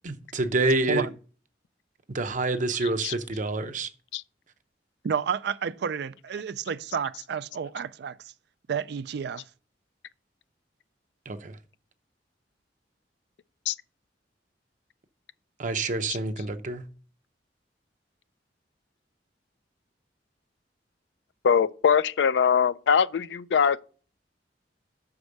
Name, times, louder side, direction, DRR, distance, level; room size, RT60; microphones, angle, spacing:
voice 1, 0.0-1.1 2.1-3.9 11.3-11.6 15.6-16.8, right 2 dB, 45° right, 0.7 m, -27 dB
voice 2, 5.0-8.2 8.7-9.4, right 7 dB, 65° right, 0.4 m, -30 dB
voice 3, 21.4-23.8, left 7 dB, 75° left, 0.4 m, -22 dB
6.2 x 4.8 x 6.6 m
head